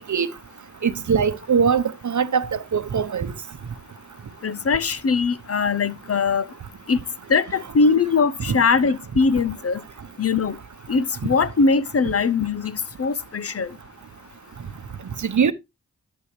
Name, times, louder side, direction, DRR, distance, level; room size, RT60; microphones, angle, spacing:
voice 1, 0.8-3.3 8.5-8.6 15.2-15.5, right 6 dB, 65° right, 0.9 m, -21 dB
voice 2, 4.4-6.5 6.9-7.0 7.3-9.8 10.2-10.6 10.9-13.8, left 4 dB, 50° left, 0.8 m, -21 dB
12.0 x 6.2 x 3.2 m
cardioid pair, 45°, 31 cm